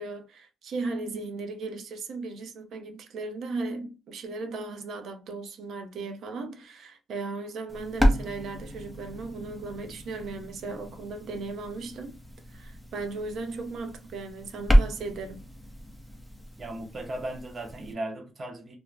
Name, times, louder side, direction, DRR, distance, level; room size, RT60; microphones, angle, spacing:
voice 1, 0.0-12.2 12.5-15.4, right 3 dB, 70° right, 0.6 m, -36 dB
sound 1, 7.7-17.9, equal, ahead, 0.7 m, -30 dB
voice 2, 16.6-18.7, right 1 dB, 35° right, 0.8 m, -36 dB
2.5 x 2.1 x 3.2 m
cardioid pair, 90°, 0 cm